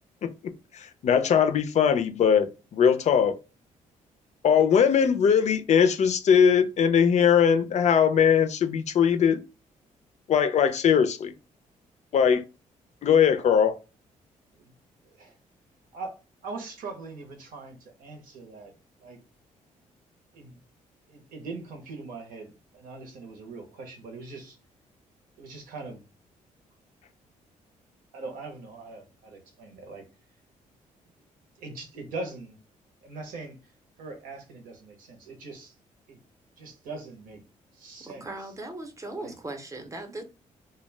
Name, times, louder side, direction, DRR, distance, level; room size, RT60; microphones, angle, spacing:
voice 1, 0.7-2.5 2.7-3.3 4.4-9.4 10.3-11.3 12.1-12.4 13.0-13.8, left 7 dB, 55° left, 0.4 m, -20 dB
voice 2, 15.0-15.4 15.9-18.7 19.0-19.2 20.3-20.6 21.1-24.6 25.4-26.0 28.1-30.0 31.6-32.6 33.0-33.7 34.0-35.7 36.1-36.2 36.6-37.4 37.7-38.5 39.2-39.3, right 3 dB, 80° right, 0.8 m, -41 dB
voice 3, 38.0-40.2, right 2 dB, 20° right, 0.7 m, -38 dB
2.2 x 2.1 x 3.2 m
cardioid pair, 75°, 14 cm